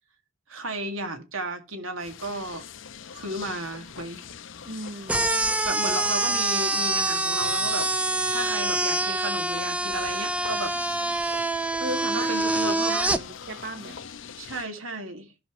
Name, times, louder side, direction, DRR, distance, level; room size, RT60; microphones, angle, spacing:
voice 1, 0.5-2.6 3.1-4.2 5.7-7.9 8.3-10.7 12.1-13.3 14.4-15.3, right 2 dB, 80° right, 1.9 m, -33 dB
sound 1, 2.0-14.7, left 7 dB, 65° left, 0.7 m, -43 dB
voice 2, 4.6-5.3 11.8-13.2 13.5-14.0, right 1 dB, 55° right, 1.0 m, -36 dB
sound 2, 5.1-13.2, right 2 dB, 5° right, 0.4 m, -25 dB
16.5 x 5.6 x 3.0 m
head